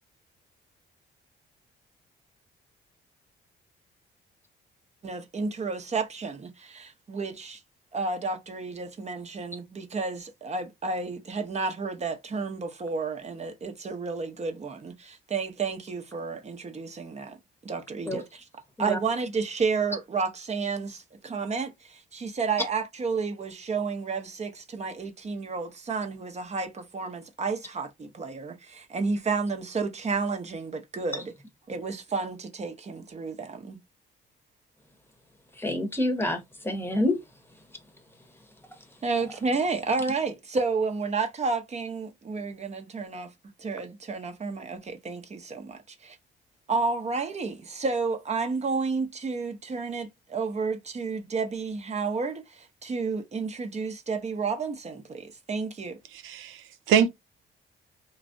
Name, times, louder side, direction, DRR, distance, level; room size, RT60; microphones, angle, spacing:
voice 1, 5.0-7.6 7.9-17.4 17.6-18.4 18.8-31.3 31.7-33.8 39.0-43.3 43.6-46.2 46.7-56.0, right 4 dB, 35° right, 0.8 m, -31 dB
voice 2, 35.6-37.2, left 1 dB, 10° left, 0.9 m, -27 dB
voice 3, 56.1-57.1, right 8 dB, 85° right, 0.5 m, -24 dB
3.2 x 2.4 x 2.6 m
cardioid pair, 90°, 20 cm